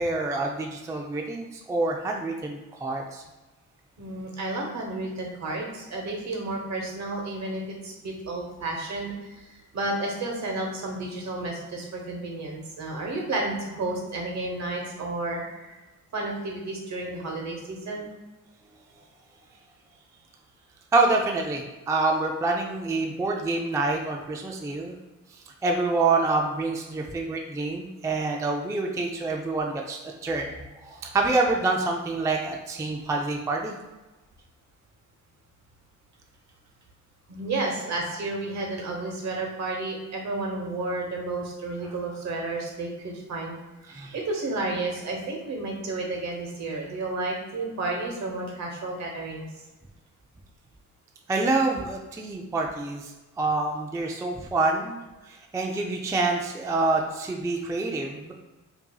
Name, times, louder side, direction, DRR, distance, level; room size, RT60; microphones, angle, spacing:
voice 1, 0.0-3.2 20.9-24.9 25.6-30.5 30.8-33.7 43.9-44.2 51.3-53.1 53.4-55.0 55.3-58.3, right 3 dB, 10° right, 1 dB, 0.3 m, -27 dB
voice 2, 4.0-15.8 16.1-18.1 37.3-43.6 43.9-49.5, right 2 dB, 60° right, 0 dB, 1.1 m, -32 dB
5.3 x 2.7 x 2.3 m, 1.1 s
cardioid pair, 120°, 31 cm